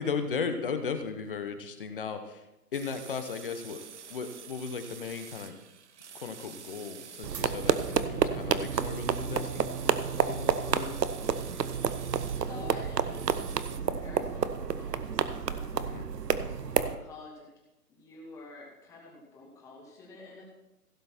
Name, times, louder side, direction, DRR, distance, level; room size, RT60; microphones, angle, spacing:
voice 1, 0.0-2.4 2.7-3.8 4.1-5.5 6.1-11.0 15.8-16.1, left 5 dB, 35° left, 8 dB, 0.9 m, -36 dB
sound 1, 2.7-13.8, right 7 dB, 45° right, 0.7 m, -48 dB
sound 2, 7.2-17.0, right 7 dB, 80° right, 0.9 m, -30 dB
voice 2, 12.4-16.0 16.3-17.5 17.9-20.4, left 3 dB, 5° left, -2 dB, 1.2 m, -49 dB
16.0 x 6.7 x 4.4 m, 0.95 s
hypercardioid pair, 155°, 48 cm